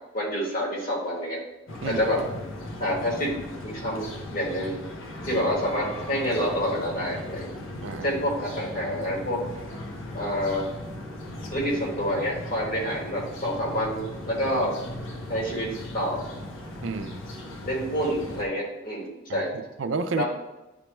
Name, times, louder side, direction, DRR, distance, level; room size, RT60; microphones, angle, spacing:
voice 1, 0.1-1.4 1.8-2.2 2.8-3.3 3.6-4.8 5.3-7.5 8.0-9.4 10.1-10.7 11.5-14.8 15.3-15.7 15.9-16.2 17.6-19.5 20.2-20.3, equal, 45° left, -3 dB, 1.9 m, -27 dB
sound 1, 1.7-18.4, left 1 dB, 75° left, 0.8 m, -38 dB
voice 2, 7.8-8.2 16.8-17.3 19.3-20.2, right 3 dB, 65° right, 7 dB, 0.4 m, -31 dB
10.0 x 3.3 x 3.0 m, 1.0 s
head